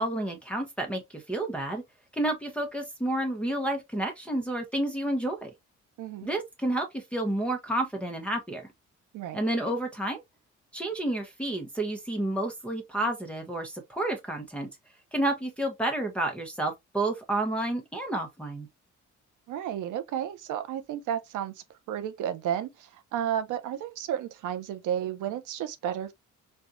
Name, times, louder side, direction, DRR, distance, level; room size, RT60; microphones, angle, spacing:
voice 1, 0.0-1.8 2.1-5.5 6.2-8.7 9.3-10.2 10.7-14.7 15.1-18.7, right 1 dB, 5° left, 0.9 m, -30 dB
voice 2, 6.0-6.3 9.1-9.4 19.5-21.5 21.9-26.1, right 10 dB, 85° right, 0.7 m, -32 dB
4.3 x 2.3 x 2.6 m
cardioid pair, 90°, 30 cm